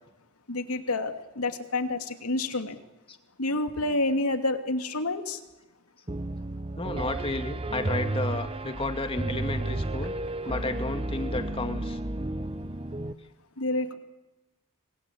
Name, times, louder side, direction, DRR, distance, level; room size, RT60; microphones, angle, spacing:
voice 1, 0.5-2.8 3.4-5.4 10.4-10.5 13.6-13.9, left 2 dB, 80° left, 6 dB, 2.7 m, -28 dB
Piano, 6.1-13.1, right 1 dB, 25° right, 1.0 m, -32 dB
voice 2, 6.8-10.1 10.4-12.0, left 2 dB, 25° left, 6 dB, 2.3 m, -32 dB
27.0 x 20.5 x 8.7 m, 1.0 s
head